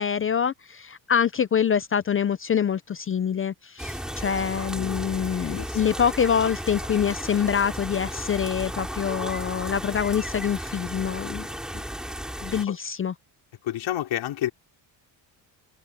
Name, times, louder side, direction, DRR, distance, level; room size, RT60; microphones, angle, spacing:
voice 1, 0.0-11.5 12.4-13.1, left 7 dB, 30° left, 0.4 m, -25 dB
sound 1, 3.8-12.7, equal, ahead, 5.0 m, -34 dB
voice 2, 4.7-5.8 12.7-12.8 13.6-14.5, left 13 dB, 80° left, 4.4 m, -31 dB
cardioid pair, 150°, 45 cm